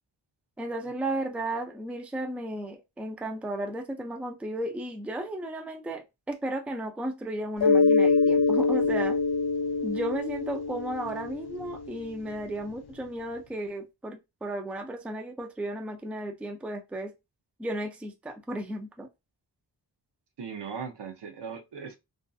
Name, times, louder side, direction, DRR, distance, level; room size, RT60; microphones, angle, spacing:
voice 1, 0.6-9.2 9.8-17.1 17.6-19.1, right 1 dB, 5° right, 0.4 m, -34 dB
Mallet percussion, 7.6-12.0, left 4 dB, 65° left, 0.5 m, -24 dB
voice 2, 20.4-22.0, right 6 dB, 70° right, 0.6 m, -38 dB
2.5 x 2.5 x 2.3 m
wide cardioid pair, 90°, 44 cm